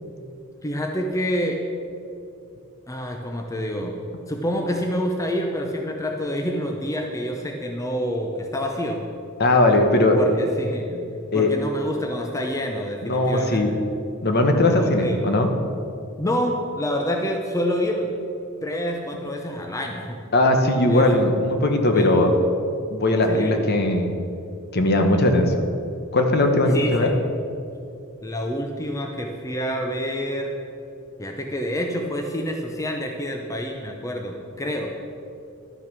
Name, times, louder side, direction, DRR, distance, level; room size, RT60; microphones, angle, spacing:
voice 1, 0.6-1.6 2.9-4.0 4.3-9.1 10.1-11.1 11.3-13.8 14.6-15.3 16.2-18.1 18.6-20.2 20.9-21.1 21.9-22.3 23.3-23.6 26.7-27.2 28.2-30.6 31.2-34.9, equal, 15° left, 2 dB, 0.7 m, -27 dB
voice 2, 9.4-10.2 11.3-11.5 13.0-13.7 14.2-15.5 20.3-22.3 22.9-24.1 24.7-25.6 26.1-27.1, left 1 dB, 50° left, 4 dB, 1.0 m, -19 dB
12.0 x 6.2 x 6.1 m, 2.6 s
head